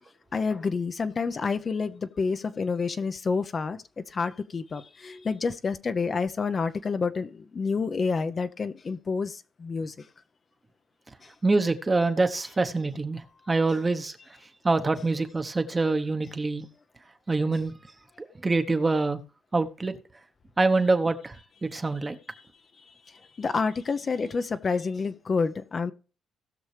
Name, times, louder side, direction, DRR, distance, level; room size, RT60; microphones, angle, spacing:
voice 1, 0.3-3.8 4.1-9.9 23.4-25.9, left 4 dB, 40° left, 0.7 m, -28 dB
voice 2, 11.4-14.1 14.6-16.7 17.3-17.7 18.2-19.2 19.5-20.0 20.6-21.4 21.6-22.2, right 3 dB, 25° right, 1.0 m, -25 dB
18.0 x 6.2 x 3.3 m
cardioid pair, 90°, 0 cm